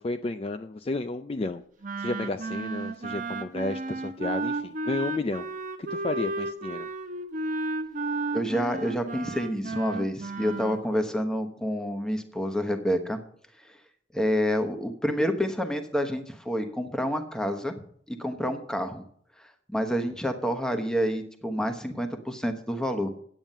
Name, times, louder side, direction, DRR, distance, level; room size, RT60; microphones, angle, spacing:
voice 1, 0.0-1.6 2.0-5.5 5.9-6.9, left 2 dB, 30° left, 8 dB, 0.4 m, -32 dB
Wind instrument woodwind instrument, 1.8-10.8, right 2 dB, 45° right, 0.8 m, -33 dB
voice 2, 8.3-13.2 13.6-13.7 14.1-17.7 18.1-19.0 19.7-23.1, equal, 5° left, 6 dB, 1.0 m, -28 dB
9.0 x 8.8 x 5.4 m, 0.63 s
head